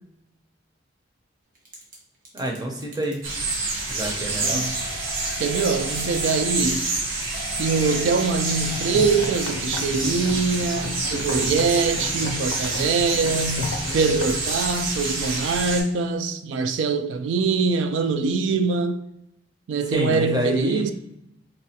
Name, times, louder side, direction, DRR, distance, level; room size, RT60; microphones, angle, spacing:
Typing / Telephone, 1.5-2.0 2.2-11.3 11.6-14.7 14.9-15.5, left 1 dB, 50° right, 0.9 m, -41 dB
voice 1, 2.3-3.2 3.9-4.7 19.9-20.9, right 1 dB, 20° right, 0.6 m, -27 dB
sound 1, 3.2-15.8, right 2 dB, 90° right, 0.8 m, -28 dB
voice 2, 5.4-6.9 7.6-19.0 19.7-20.9, right 4 dB, 75° right, 0.3 m, -23 dB
sound 2, 8.7-14.6, left 2 dB, 80° left, 0.4 m, -34 dB
4.0 x 2.2 x 2.7 m
head